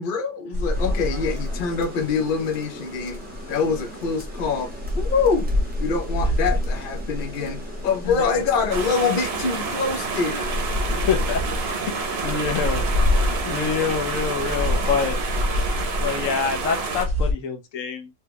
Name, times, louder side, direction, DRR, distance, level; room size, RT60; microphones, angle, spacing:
voice 1, 0.0-3.2 3.5-4.7 5.0-5.5 5.8-10.6 13.6-13.8, left 5 dB, 50° left, 0.7 m, -25 dB
sound 1, 0.5-17.3, left 1 dB, 35° right, 1.2 m, -28 dB
Rain, 0.7-15.0, right 1 dB, 10° right, 0.7 m, -41 dB
sound 2, 8.7-17.1, right 4 dB, 60° right, 0.8 m, -29 dB
voice 2, 10.9-11.4 11.9-12.9 13.5-15.2 16.0-18.1, left 6 dB, 75° left, 1.0 m, -26 dB
3.0 x 2.2 x 3.3 m
omnidirectional pair, 1.3 m